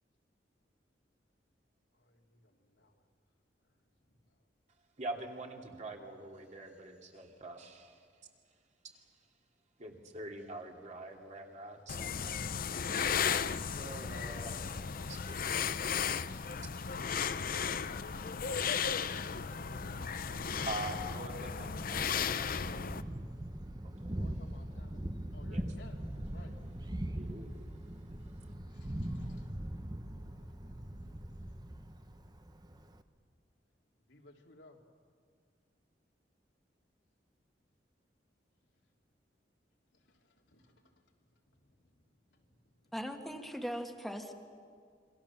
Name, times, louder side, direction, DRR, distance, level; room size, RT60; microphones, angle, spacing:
voice 1, 1.9-3.0 3.6-4.4 17.5-20.0 24.1-26.6 28.7-29.6 30.1-31.2 34.0-34.8 39.9-42.9, left 2 dB, 85° left, 1 dB, 3.1 m, -60 dB
voice 2, 5.0-8.1 9.8-12.4 13.7-15.8 20.6-22.5 23.8-24.2 25.5-25.6 27.2-27.6, right 2 dB, 40° right, 2 dB, 2.9 m, -45 dB
sound 1, 11.9-23.0, left 7 dB, 55° left, 0.7 m, -35 dB
Thunder, 19.7-33.0, right 1 dB, 25° right, 1.0 m, -42 dB
voice 3, 42.9-44.3, equal, ahead, 4 dB, 1.7 m, -39 dB
27.0 x 24.5 x 7.3 m, 2.1 s
head